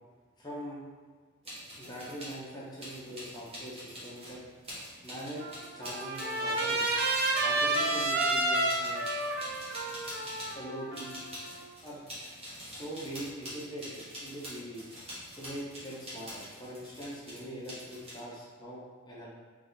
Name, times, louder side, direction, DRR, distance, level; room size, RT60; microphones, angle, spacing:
voice 1, 0.4-0.8 1.7-4.4 5.0-5.4 5.7-7.0 7.4-9.1 10.5-11.1 11.8-12.0 12.6-14.9 15.4-19.3, equal, 20° left, -6 dB, 0.8 m, -42 dB
sound 1, 1.4-2.4 2.8-10.6 10.9-18.2, equal, 25° right, 1.3 m, -44 dB
Trumpet, 5.4-11.6, right 2 dB, 45° right, 0.6 m, -30 dB
3.6 x 3.3 x 4.0 m, 1.4 s
head